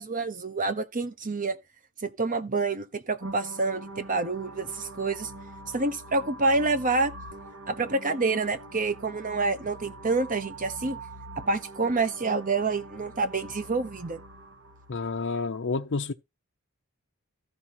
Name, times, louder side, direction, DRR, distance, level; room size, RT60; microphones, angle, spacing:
voice 1, 0.0-1.6 2.0-5.3 5.7-7.1 7.7-11.0 11.4-14.2, right 3 dB, 40° right, 1.2 m, -28 dB
sound 1, 3.2-15.2, right 2 dB, 60° right, 1.9 m, -44 dB
voice 2, 14.9-16.1, left 4 dB, 55° left, 0.6 m, -29 dB
14.0 x 5.2 x 4.3 m
head